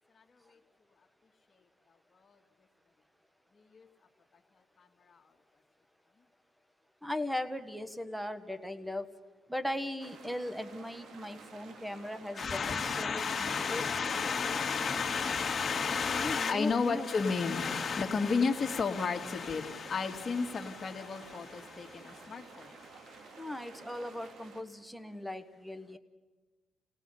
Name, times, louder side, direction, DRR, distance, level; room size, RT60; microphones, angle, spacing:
voice 1, 7.0-9.1 9.5-13.8 16.1-17.1 23.4-26.0, left 1 dB, ahead, 11 dB, 1.4 m, -38 dB
sound 1, 10.0-24.6, right 4 dB, 65° right, 2.1 m, -52 dB
voice 2, 12.3-23.4, left 5 dB, 40° left, 4 dB, 2.2 m, -32 dB
30.0 x 18.0 x 5.7 m, 1.3 s
cardioid pair, 90°, 0 cm